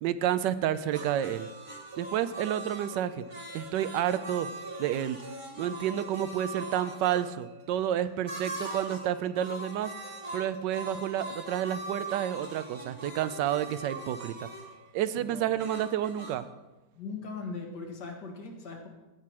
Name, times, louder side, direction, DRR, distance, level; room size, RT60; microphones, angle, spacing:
voice 1, 0.0-1.5 2.0-3.2 3.5-4.5 4.8-5.2 5.6-9.9 10.3-14.5 14.9-16.5, right 11 dB, 85° right, 14 dB, 1.2 m, -30 dB
sound 1, 0.7-15.3, right 1 dB, 65° right, 1.4 m, -50 dB
sound 2, 0.9-7.2 8.3-9.1 9.3-14.7 15.6-16.4, right 2 dB, 20° right, 1.2 m, -41 dB
voice 2, 15.2-15.5 17.0-18.9, left 4 dB, 70° left, 2 dB, 2.1 m, -39 dB
16.0 x 5.9 x 4.7 m, 1.1 s
omnidirectional pair, 1.9 m